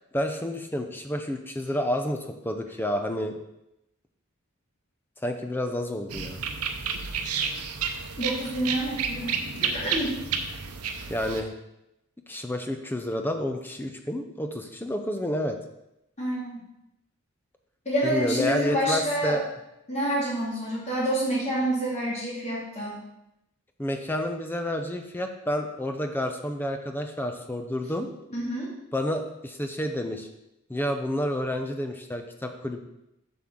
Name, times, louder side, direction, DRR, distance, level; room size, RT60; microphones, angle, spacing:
voice 1, 0.1-3.4 5.2-6.4 11.1-11.5 12.3-15.6 18.0-19.4 23.8-28.1 28.9-30.3 30.7-32.8, left 1 dB, 10° left, 6 dB, 0.5 m, -29 dB
sound 1, 6.1-11.4, right 6 dB, 90° right, 0.7 m, -31 dB
voice 2, 8.2-10.2 16.2-16.6 17.9-19.4 19.9-23.0 28.3-28.7, right 1 dB, 30° left, -5 dB, 2.4 m, -28 dB
7.4 x 6.0 x 3.7 m, 0.87 s
head